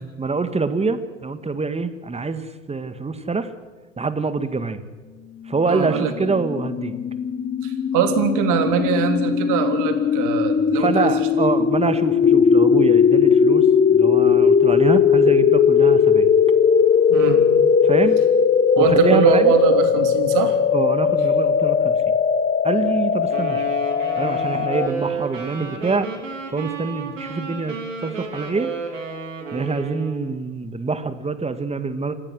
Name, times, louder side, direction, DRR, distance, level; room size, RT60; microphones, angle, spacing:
voice 1, 0.2-3.5 4.0-4.8 5.5-7.0 10.7-16.3 17.8-18.2 18.8-19.5 20.7-22.0 22.6-23.6 24.2-26.1 26.5-28.7 29.5-32.1, right 4 dB, 15° right, 11 dB, 1.8 m, -25 dB
sound 1, 5.7-24.9, left 7 dB, 25° left, 1.1 m, -18 dB
voice 2, 5.7-6.3 7.6-11.1 11.4-11.7 17.1-17.4 18.8-20.6, right 8 dB, 55° right, 6 dB, 3.5 m, -22 dB
Wind instrument woodwind instrument, 23.3-30.3, right 4 dB, 90° right, 4.2 m, -32 dB
28.5 x 15.5 x 6.5 m, 1.3 s
hypercardioid pair, 75°, 37 cm